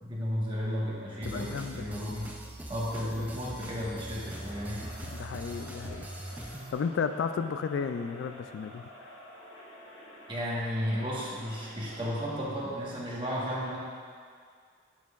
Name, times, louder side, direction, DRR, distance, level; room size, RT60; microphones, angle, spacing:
voice 1, 0.0-2.3 2.7-4.8 6.3-6.4 10.3-13.8, equal, 25° right, -7 dB, 1.4 m, -33 dB
sound 1, 1.2-6.7, right 1 dB, 10° right, 0.3 m, -42 dB
voice 2, 1.3-1.9 3.2-3.3 5.1-6.1 6.7-9.0, left 6 dB, 70° left, 9 dB, 0.3 m, -33 dB
Crowd, 4.1-12.2, left 1 dB, 90° left, 1.5 m, -49 dB
10.5 x 5.6 x 2.4 m, 2.1 s
head